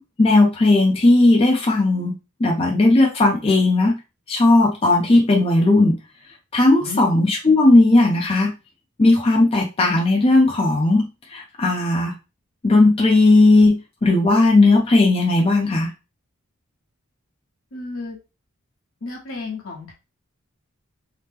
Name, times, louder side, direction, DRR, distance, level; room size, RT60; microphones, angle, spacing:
voice 1, 0.2-2.1 2.4-4.0 4.3-6.0 6.5-8.5 9.0-12.1 12.6-15.9, left 2 dB, 25° left, -1 dB, 0.5 m, -16 dB
voice 2, 17.7-18.2 19.0-19.9, left 3 dB, 70° left, 0 dB, 1.0 m, -32 dB
2.9 x 2.1 x 3.4 m, 0.29 s
head